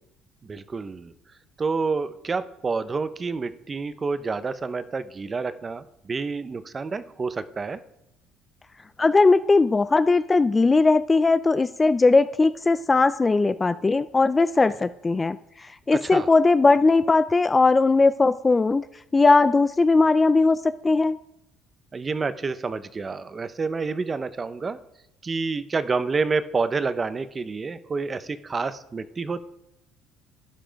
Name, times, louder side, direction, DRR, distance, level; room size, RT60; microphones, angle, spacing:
voice 1, 0.4-1.1 1.6-7.8 15.9-16.3 21.9-24.8 25.2-29.4, right 4 dB, 25° right, 14 dB, 0.7 m, -28 dB
voice 2, 9.0-18.8 19.1-21.2, left 3 dB, 15° left, 14 dB, 0.4 m, -19 dB
12.5 x 11.0 x 5.2 m, 0.82 s
cardioid pair, 125°, 0 cm